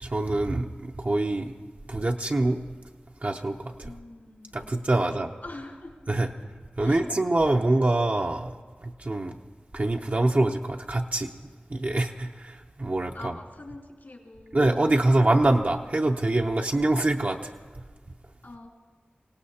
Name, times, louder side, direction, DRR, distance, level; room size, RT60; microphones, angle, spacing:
voice 1, 0.0-1.5 1.9-2.6 3.2-3.9 4.5-5.3 6.1-6.3 6.8-8.5 9.0-9.3 9.7-11.3 11.7-13.3 14.5-17.5, right 2 dB, 50° right, 1 dB, 0.6 m, -24 dB
voice 2, 3.8-4.7 5.0-6.0 6.4-6.5 6.8-7.1 13.1-14.6 18.4-18.7, left 2 dB, 70° left, -2 dB, 3.0 m, -44 dB
25.5 x 17.5 x 2.8 m, 1.5 s
wide cardioid pair, 45°, 4 cm